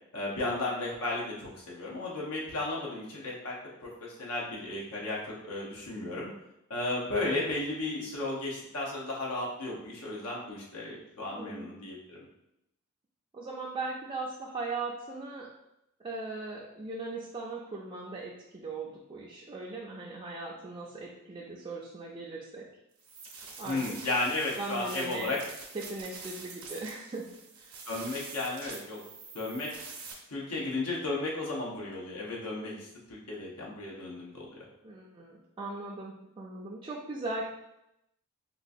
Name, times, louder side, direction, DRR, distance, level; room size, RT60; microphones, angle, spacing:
voice 1, 0.1-6.3 6.7-12.2 23.6-25.4 27.8-29.0 29.3-29.7 30.3-34.5, left 2 dB, 80° left, -4 dB, 0.9 m, -34 dB
voice 2, 11.3-11.7 13.3-15.5 16.0-22.7 23.6-23.8 24.6-25.3 25.8-27.2 27.6-27.7 34.8-37.4, right 3 dB, 25° right, -4 dB, 0.4 m, -39 dB
sound 1, 23.0-30.1, right 4 dB, 70° right, 0.7 m, -46 dB
3.7 x 2.3 x 2.6 m, 0.84 s
head